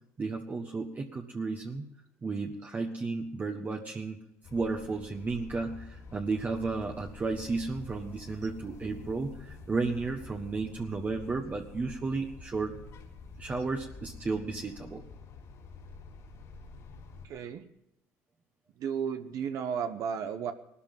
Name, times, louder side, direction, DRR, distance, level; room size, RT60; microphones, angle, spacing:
voice 1, 0.2-1.9 2.2-4.2 4.5-12.7 13.4-15.0, right 3 dB, 25° right, 2 dB, 1.4 m, -33 dB
sound 1, 4.4-17.3, left 4 dB, 60° left, 3.4 m, -48 dB
voice 2, 17.2-17.7 18.8-20.5, right 7 dB, 65° right, 7 dB, 1.1 m, -33 dB
18.0 x 13.0 x 5.5 m, 0.84 s
supercardioid pair, 90°, 6 cm